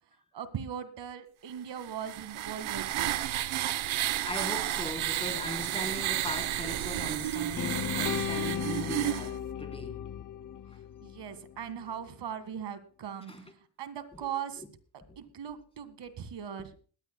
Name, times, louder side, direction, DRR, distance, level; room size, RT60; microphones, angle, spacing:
voice 1, 0.3-3.2 11.0-13.3 13.8-14.6 15.2-16.7, right 8 dB, 60° right, 12 dB, 1.9 m, -39 dB
sound 1, 1.8-9.3, right 14 dB, 85° right, 0.9 m, -32 dB
voice 2, 4.2-10.0 13.3-13.5 15.1-15.2, left 1 dB, 10° left, 5 dB, 3.7 m, -39 dB
sound 2, 7.6-11.6, left 9 dB, 40° left, 0.7 m, -36 dB
20.5 x 16.0 x 2.2 m, 0.39 s
cardioid pair, 90°, 47 cm